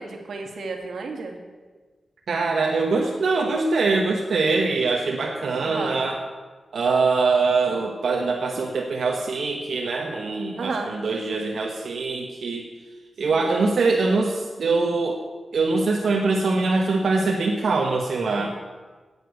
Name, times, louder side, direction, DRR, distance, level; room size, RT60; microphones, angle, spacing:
voice 1, 0.0-1.4 5.6-6.0 10.6-10.9 13.3-13.4, right 4 dB, 90° right, 3 dB, 1.9 m, -32 dB
voice 2, 2.3-6.2 6.7-12.7 13.2-15.2 15.5-18.6, right 3 dB, 65° right, 0 dB, 1.1 m, -23 dB
10.0 x 8.2 x 8.2 m, 1.3 s
wide cardioid pair, 180°, 0 cm